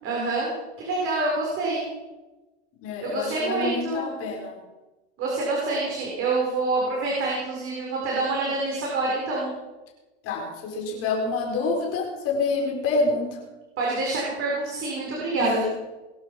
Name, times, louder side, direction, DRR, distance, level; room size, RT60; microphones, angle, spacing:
voice 1, 0.0-1.9 3.0-4.1 5.2-9.5 13.8-15.7, right 2 dB, 40° right, -4 dB, 6.7 m, -26 dB
voice 2, 2.8-4.6 10.2-13.4 15.4-15.7, left 3 dB, 40° left, 0 dB, 5.2 m, -27 dB
22.5 x 12.0 x 5.4 m, 1.1 s
supercardioid pair, 120°, 34 cm